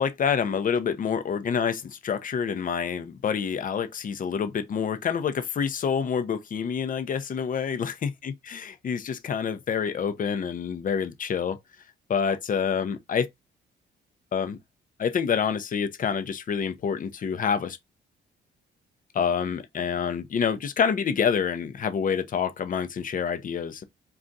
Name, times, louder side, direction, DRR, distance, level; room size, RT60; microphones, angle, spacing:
voice 1, 0.0-11.6 12.1-13.3 14.3-14.6 15.0-17.8 19.1-23.8, left 7 dB, 45° left, 0.6 m, -27 dB
2.4 x 2.4 x 3.9 m
cardioid pair, 90°, 20 cm